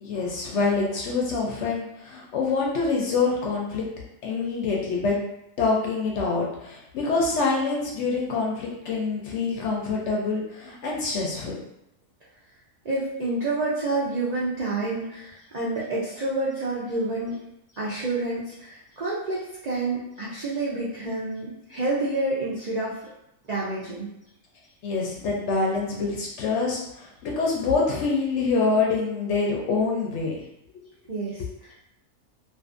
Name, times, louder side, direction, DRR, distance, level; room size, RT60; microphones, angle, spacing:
voice 1, 0.0-3.8 4.2-5.2 5.6-11.5 24.8-30.4 30.7-30.8, left 4 dB, 65° left, -2 dB, 0.8 m, -26 dB
voice 2, 12.8-17.4 17.7-23.1 23.5-24.1 31.1-31.7, right 2 dB, 85° right, -7 dB, 0.3 m, -28 dB
2.5 x 2.5 x 2.4 m, 0.83 s
omnidirectional pair, 1.4 m